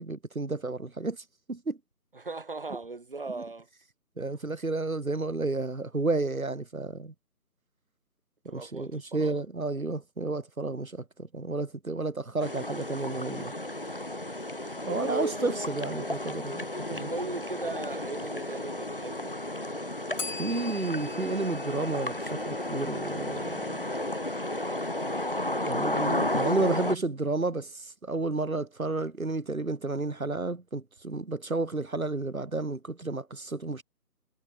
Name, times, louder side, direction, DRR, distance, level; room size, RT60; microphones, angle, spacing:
voice 1, 0.0-1.8 4.2-7.1 8.4-13.5 14.9-17.1 20.2-23.8 25.6-33.8, right 3 dB, 60° right, 5.1 m, -31 dB
voice 2, 2.1-3.7 8.5-9.4 14.8-15.6 17.1-19.4, right 3 dB, 35° right, 2.9 m, -37 dB
sound 1, 12.4-26.9, left 1 dB, 35° left, 0.9 m, -33 dB
Bell, 20.2-23.0, left 3 dB, 50° left, 3.1 m, -42 dB
figure-of-eight pair, 170°, 48 cm